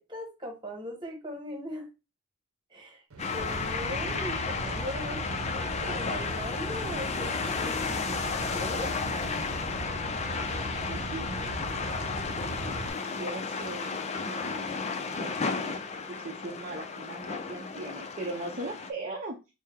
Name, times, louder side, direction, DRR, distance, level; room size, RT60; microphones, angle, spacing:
voice 1, 0.0-1.9 2.7-3.0 3.3-9.0, equal, 20° right, 1 dB, 1.3 m, -39 dB
sound 1, 3.1-12.9, right 2 dB, 80° right, 0.8 m, -38 dB
sound 2, 3.2-18.9, left 4 dB, 30° left, 0.4 m, -33 dB
voice 2, 10.6-11.4 13.2-14.0 14.3-14.7 15.1-19.4, right 2 dB, 35° right, -1 dB, 0.6 m, -39 dB
4.6 x 2.0 x 3.6 m, 0.26 s
head